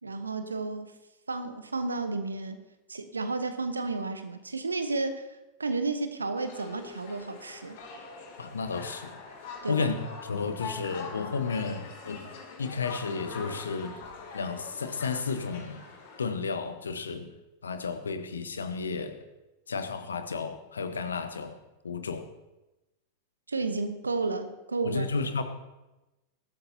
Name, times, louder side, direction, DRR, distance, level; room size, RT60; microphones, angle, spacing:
voice 1, 0.0-0.9 1.3-2.6 2.9-5.3 5.6-7.8 9.6-9.9 23.5-25.1, right 3 dB, 75° right, 9 dB, 1.1 m, -32 dB
sound 1, 6.4-16.3, left 5 dB, 55° left, 2.7 m, -44 dB
voice 2, 8.4-9.2 9.7-12.3 12.6-14.0 14.3-15.8 16.2-17.3 17.6-19.2 19.7-21.6 21.8-22.3 24.8-25.4, left 4 dB, 70° left, 9 dB, 1.1 m, -32 dB
18.5 x 12.0 x 2.8 m, 1.0 s
figure-of-eight pair, 90°, 0 cm